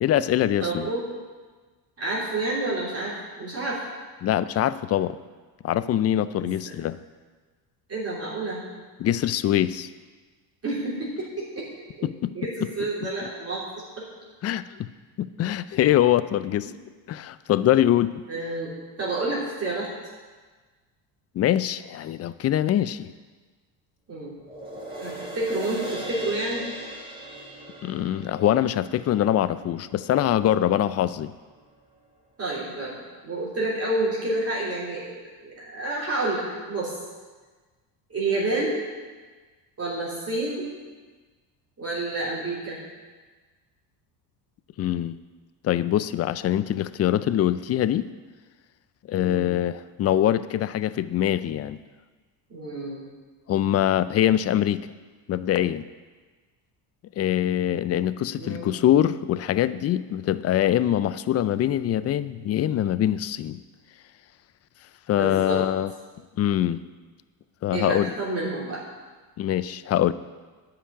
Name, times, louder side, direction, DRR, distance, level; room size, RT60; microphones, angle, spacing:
voice 1, 0.0-0.9 4.2-5.2 5.6-7.0 9.0-9.9 12.0-12.3 14.4-14.7 15.2-16.7 17.1-18.2 21.3-23.1 27.8-31.3 44.8-45.2 45.6-48.1 49.1-51.8 53.5-54.9 55.3-55.9 57.2-63.6 65.1-65.9 66.4-66.8 67.6-68.1 69.4-70.1, left 11 dB, 35° left, 15 dB, 0.4 m, -23 dB
voice 2, 0.6-1.0 2.0-3.8 6.4-6.6 7.9-8.6 10.6-11.7 12.0-12.1 12.3-14.1 18.3-19.9 24.1-24.4 25.0-26.7 32.4-36.9 38.1-38.8 39.8-40.6 41.8-42.8 49.2-49.5 52.5-53.1 58.3-58.7 65.1-65.6 67.7-68.8, right 2 dB, 30° right, -7 dB, 3.4 m, -29 dB
sound 1, 24.4-31.0 31.4-31.5, right 1 dB, 10° right, 3.4 m, -39 dB
9.8 x 5.9 x 8.7 m, 1.4 s
cardioid pair, 105°, 48 cm